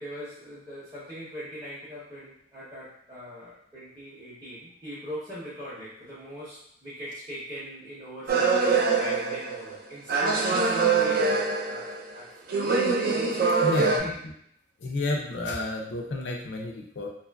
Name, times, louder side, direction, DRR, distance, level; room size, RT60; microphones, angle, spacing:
voice 1, 0.0-12.5 13.8-14.2, equal, 20° right, -12 dB, 0.7 m, -41 dB
sound 1, 8.3-9.8 10.1-12.1 12.5-14.0, right 4 dB, 55° right, 0.4 m, -24 dB
voice 2, 13.6-14.1 14.8-17.1, left 2 dB, 70° left, 0 dB, 0.4 m, -30 dB
2.9 x 2.4 x 2.2 m, 0.69 s
head